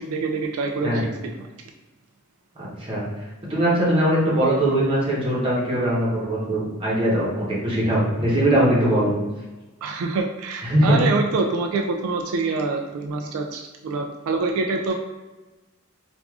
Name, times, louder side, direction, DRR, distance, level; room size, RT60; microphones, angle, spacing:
voice 1, 0.0-1.5 9.8-14.9, right 3 dB, 75° right, 3 dB, 0.3 m, -26 dB
voice 2, 2.6-3.0 3.5-9.1 10.6-10.9, right 1 dB, 25° right, -6 dB, 0.9 m, -21 dB
4.6 x 2.5 x 2.3 m, 1.2 s
head